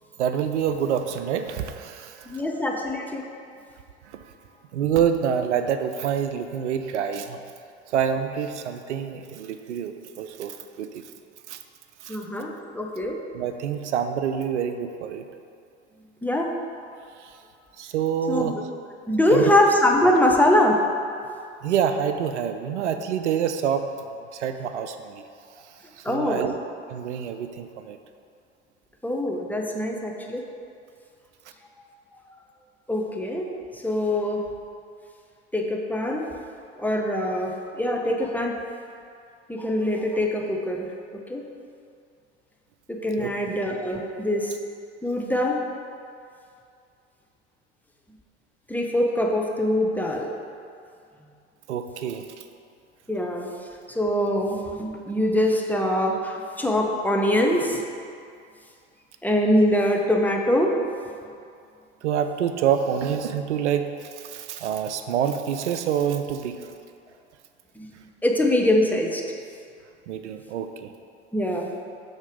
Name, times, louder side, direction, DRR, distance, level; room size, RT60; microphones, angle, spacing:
voice 1, 0.2-2.4 4.1-4.2 4.7-7.4 7.9-11.0 11.5-11.6 12.0-12.2 13.3-15.2 17.2-17.3 17.8-18.5 19.3-19.5 21.6-23.9 24.3-25.2 26.0-26.6 26.9-28.0 43.2-43.6 51.7-52.2 62.0-66.7 70.1-70.9, right 8 dB, 80° right, 8 dB, 0.5 m, -27 dB
voice 2, 2.3-3.2 12.1-13.2 16.2-16.5 18.3-18.5 19.1-20.8 26.0-26.5 29.0-30.4 32.9-33.5 33.8-34.5 35.5-36.3 36.8-38.6 39.5-40.9 41.3-41.5 42.9-44.5 45.0-45.6 48.7-50.3 53.1-53.5 53.9-57.8 59.2-60.7 67.8-67.9 68.2-69.2 71.3-71.7, left 1 dB, 5° left, 0 dB, 0.7 m, -23 dB
6.3 x 3.9 x 5.2 m, 2.4 s
hypercardioid pair, 75°, 34 cm